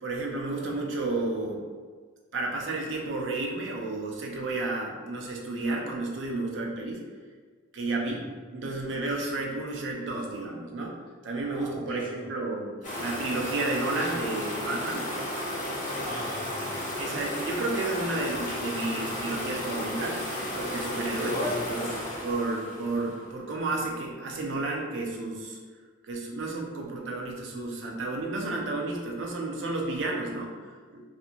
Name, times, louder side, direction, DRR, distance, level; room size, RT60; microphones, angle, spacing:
voice 1, 0.0-1.6 2.3-7.0 7.7-8.2 8.5-11.0 11.2-12.7 13.0-15.1 17.0-20.2 20.5-21.3 21.7-21.9 22.2-25.6 26.1-31.0, right 2 dB, 60° right, 0 dB, 0.5 m, -31 dB
voice 2, 11.5-12.3 16.0-16.8 21.1-21.7, right 1 dB, 25° right, -9 dB, 0.9 m, -41 dB
sound 1, 12.8-23.3, left 1 dB, 40° left, 0.7 m, -33 dB
2.5 x 2.4 x 2.8 m, 1.5 s
head